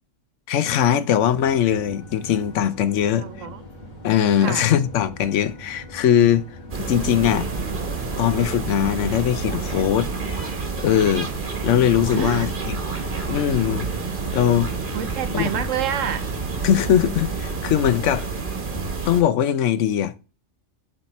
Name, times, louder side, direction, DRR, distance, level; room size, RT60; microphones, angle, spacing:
voice 1, 0.5-3.5 4.0-6.5 6.8-7.5 8.2-10.1 10.8-11.3 11.6-12.8 13.3-13.9 14.3-14.7 15.3-15.4 16.6-18.3 19.1-20.1, left 10 dB, 80° left, 1.0 m, -20 dB
sound 1, 1.2-18.9, left 2 dB, 35° left, 1.7 m, -41 dB
voice 2, 3.2-3.6 4.4-4.7 12.1-12.5 14.9-16.2, right 9 dB, 85° right, 1.2 m, -28 dB
sound 2, 6.7-19.2, right 4 dB, 45° right, 1.3 m, -29 dB
7.2 x 3.3 x 4.2 m
omnidirectional pair, 1.3 m